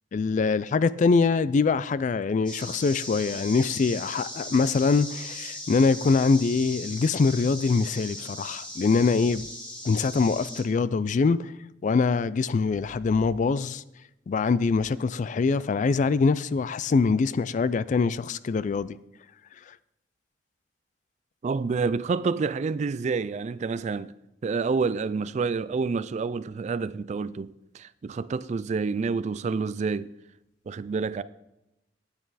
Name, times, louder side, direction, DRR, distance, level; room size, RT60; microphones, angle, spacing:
voice 1, 0.1-9.5 9.8-11.5 11.8-13.8 14.3-19.0, left 4 dB, 40° left, 0.3 m, -24 dB
sound 1, 2.5-10.6, left 1 dB, 25° left, 2.3 m, -39 dB
voice 2, 21.4-24.1 24.4-30.1 30.7-31.2, right 4 dB, 40° right, 0.3 m, -28 dB
9.3 x 9.0 x 4.1 m
head